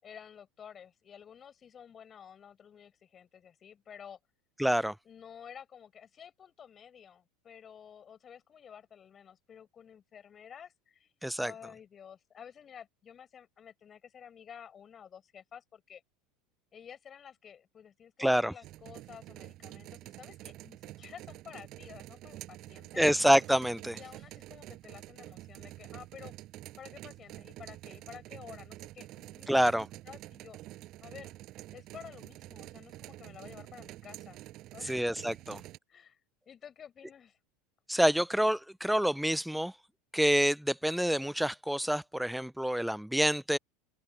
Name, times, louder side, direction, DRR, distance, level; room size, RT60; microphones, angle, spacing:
voice 1, 0.0-4.2 5.0-16.0 16.7-23.1 23.9-26.4 26.8-29.7 30.0-30.6 31.0-31.4 31.7-34.4 34.7-35.1 35.9-36.2 36.5-37.4, left 8 dB, 35° left, 7.3 m, -51 dB
voice 2, 4.6-4.9 11.2-11.5 18.2-18.5 23.0-24.0 29.5-29.8 34.9-35.6 37.9-39.7 40.1-43.6, equal, ahead, 0.5 m, -27 dB
sound 1, 18.6-35.8, right 16 dB, 55° right, 6.8 m, -48 dB
open air
hypercardioid pair, 100°, 0 cm